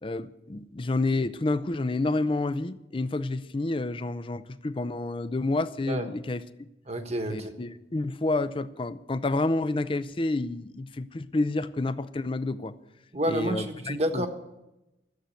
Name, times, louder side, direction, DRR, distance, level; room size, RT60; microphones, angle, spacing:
voice 1, 0.0-6.4 7.3-12.7 13.3-14.3, left 2 dB, 30° left, 14 dB, 0.5 m, -29 dB
voice 2, 6.9-7.5 13.1-14.3, right 1 dB, 35° right, 7 dB, 1.2 m, -29 dB
13.0 x 7.8 x 8.2 m, 0.94 s
head